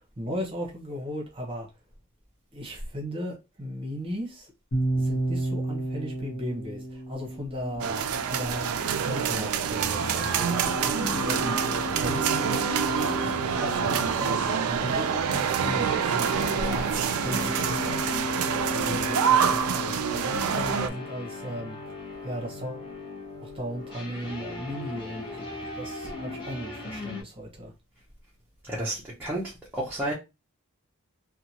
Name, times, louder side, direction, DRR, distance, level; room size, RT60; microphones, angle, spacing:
voice 1, 0.0-1.7 2.5-4.5 4.9-16.3 16.5-18.2 18.7-20.0 20.2-22.9 23.4-27.7, equal, 25° right, 0.9 m, -36 dB
sound 1, 4.7-8.8, right 2 dB, 55° left, 0.9 m, -31 dB
sound 2, 7.8-20.9, right 7 dB, 85° right, 0.4 m, -26 dB
sound 3, 10.0-27.2, left 4 dB, 20° left, 0.8 m, -36 dB
voice 2, 28.7-30.1, right 1 dB, 10° right, 0.6 m, -31 dB
2.8 x 2.2 x 2.8 m
head